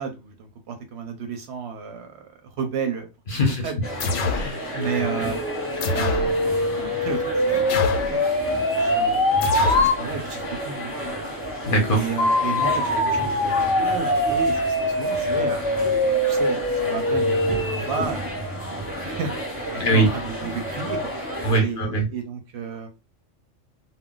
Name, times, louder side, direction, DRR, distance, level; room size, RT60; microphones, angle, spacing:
voice 1, 0.0-2.3 2.6-3.1 3.6-3.8 4.7-5.4 5.9-7.4 7.9-8.2 8.7-11.0 11.9-15.7 16.0-18.3 18.8-19.3 19.7-21.0 21.6-22.9, right 6 dB, 65° right, 6 dB, 0.8 m, -32 dB
voice 2, 3.3-3.6 4.3-4.8 11.6-12.0 19.8-20.1 21.4-22.1, right 1 dB, 50° left, 1 dB, 0.7 m, -21 dB
sound 1, 3.8-21.6, equal, 10° left, 0.8 m, -32 dB
sound 2, 4.0-4.5 5.8-6.3 7.7-8.2 9.4-9.9, left 3 dB, 85° left, 1.0 m, -25 dB
sound 3, 4.8-10.0 12.2-18.0, left 1 dB, 35° left, 0.3 m, -23 dB
2.3 x 2.2 x 3.6 m, 0.27 s
omnidirectional pair, 1.3 m